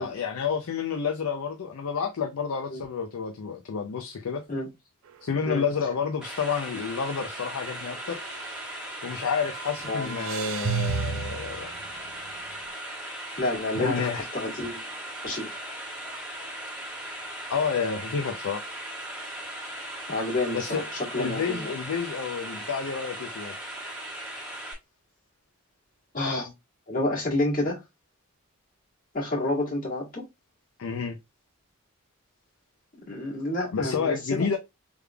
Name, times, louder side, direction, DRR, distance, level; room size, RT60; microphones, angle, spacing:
voice 1, 0.0-4.4 5.2-8.3 9.0-11.7 13.7-14.2 17.5-18.6 20.5-20.9 21.2-23.5 30.8-31.2 33.7-34.6, left 6 dB, 75° left, 0.5 m, -29 dB
sound 1, 5.1-5.4 5.8-5.9 7.7-9.2 9.5-12.5, right 7 dB, 65° right, 0.4 m, -34 dB
sound 2, 6.2-24.7, right 1 dB, 5° right, 1.1 m, -38 dB
voice 2, 9.8-10.2 13.4-14.8 15.2-15.6 20.1-20.8 21.1-21.7 26.1-26.5 26.9-27.8 29.1-30.3 33.1-34.6, left 2 dB, 40° left, 1.9 m, -29 dB
3.5 x 3.3 x 2.2 m
head